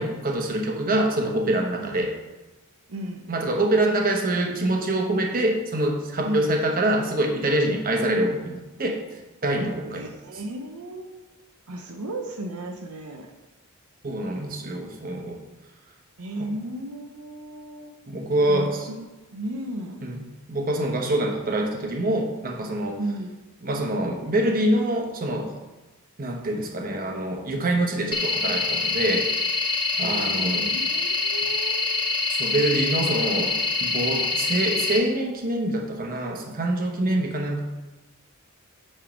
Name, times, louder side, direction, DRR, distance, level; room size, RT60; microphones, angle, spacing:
voice 1, 0.0-2.1 3.3-9.0 9.4-10.1 14.0-15.4 16.4-16.5 18.1-18.8 20.0-23.0 23.6-25.5 26.2-29.3 30.0-30.7 32.3-37.6, right 1 dB, 40° right, 2 dB, 0.9 m, -25 dB
voice 2, 2.9-3.3 6.2-6.5 9.8-11.2 11.7-13.3 16.2-17.9 18.5-19.0 19.3-20.1 23.0-23.4 30.0-32.0 37.0-37.3, right 1 dB, 80° right, 3 dB, 0.7 m, -34 dB
sound 1, 28.1-35.0, left 4 dB, 25° left, 1.4 m, -25 dB
8.8 x 3.4 x 5.1 m, 1.1 s
head